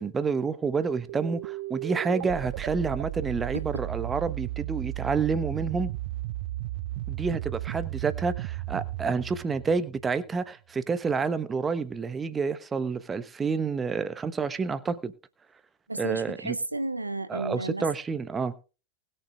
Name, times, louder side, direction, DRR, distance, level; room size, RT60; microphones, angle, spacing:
voice 1, 0.0-5.9 7.1-15.1 16.0-16.6 17.3-18.5, right 5 dB, 15° right, 1.0 m, -29 dB
sound 1, 1.1-10.4, right 16 dB, 50° right, 0.5 m, -35 dB
voice 2, 15.9-17.9, right 2 dB, 85° right, 0.7 m, -32 dB
20.5 x 7.1 x 3.5 m
figure-of-eight pair, 90°, 0 cm